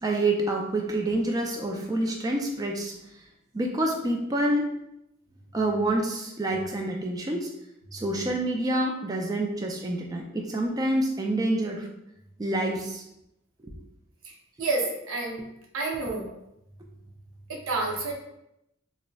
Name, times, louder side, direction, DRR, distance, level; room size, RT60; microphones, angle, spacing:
voice 1, 0.0-2.9 3.5-4.7 5.5-7.5 7.9-11.9 12.4-13.0 13.6-13.7, right 1 dB, 20° right, 1 dB, 0.3 m, -27 dB
voice 2, 14.2-15.4 15.7-16.3 17.5-18.1, right 3 dB, 80° right, -1 dB, 0.7 m, -29 dB
3.9 x 2.0 x 2.3 m, 0.83 s
head